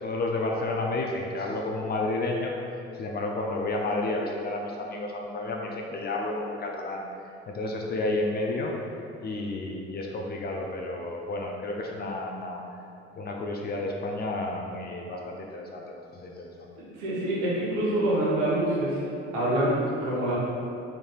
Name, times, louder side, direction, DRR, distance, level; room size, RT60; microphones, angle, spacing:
voice 1, 0.0-2.5 2.9-7.0 7.5-8.7 9.2-12.6 13.1-16.5, left 2 dB, 30° left, 0 dB, 0.4 m, -31 dB
voice 2, 17.0-18.9 19.3-20.3, right 1 dB, 70° right, -6 dB, 1.0 m, -25 dB
3.8 x 3.3 x 2.3 m, 2.6 s
figure-of-eight pair, 50°, 34 cm